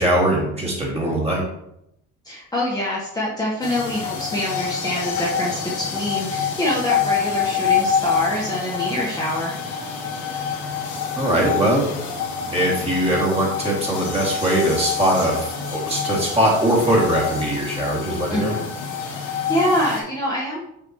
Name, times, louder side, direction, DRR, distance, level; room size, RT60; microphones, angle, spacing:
voice 1, 0.0-1.4 11.2-11.9 12.5-18.5, right 1 dB, 20° right, -4 dB, 2.3 m, -21 dB
voice 2, 2.2-9.5 18.3-18.7 19.3-20.6, left 1 dB, 15° left, -6 dB, 1.3 m, -25 dB
sound 1, 3.6-20.0, left 6 dB, 75° left, 1.6 m, -26 dB
6.8 x 5.0 x 3.0 m, 0.80 s
cardioid pair, 100°, 29 cm